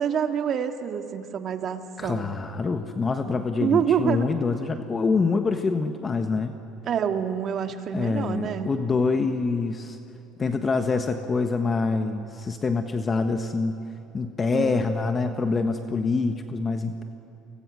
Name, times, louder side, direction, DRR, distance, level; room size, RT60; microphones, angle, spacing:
voice 1, 0.0-2.3 3.6-4.3 6.9-8.7 14.5-14.9 15.2-15.7, right 8 dB, 45° right, 6 dB, 1.9 m, -27 dB
voice 2, 2.0-6.5 7.9-10.0 10.4-13.8 14.1-17.0, left 4 dB, 25° left, 7 dB, 1.3 m, -25 dB
28.5 x 24.5 x 6.4 m, 3.0 s
supercardioid pair, 105°, 0 cm